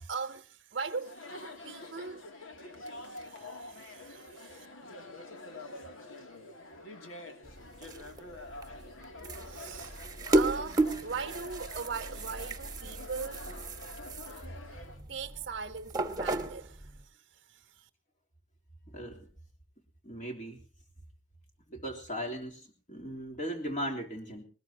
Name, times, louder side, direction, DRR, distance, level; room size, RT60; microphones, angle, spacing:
voice 1, 0.0-1.3 1.6-2.2 2.9-4.7 9.4-13.4 15.1-17.9, right 5 dB, 55° right, 0.7 m, -40 dB
Chatter, 0.9-15.0, left 2 dB, 90° left, 2.7 m, -47 dB
sound 1, 7.4-17.0, right 2 dB, 20° right, 1.2 m, -34 dB
voice 2, 18.9-19.3 20.0-20.6 21.7-24.4, equal, 40° left, 3.3 m, -38 dB
20.5 x 20.0 x 2.8 m
head